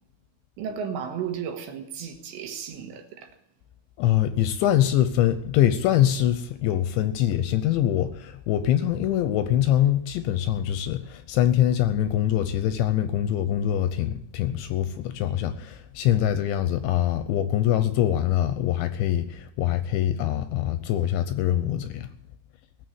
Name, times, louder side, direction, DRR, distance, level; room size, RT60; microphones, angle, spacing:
voice 1, 0.6-3.4 8.5-8.6, right 7 dB, 75° right, 3.2 m, -34 dB
voice 2, 4.0-22.1, left 11 dB, 80° left, 2.8 m, -24 dB
17.5 x 7.0 x 9.5 m
omnidirectional pair, 5.6 m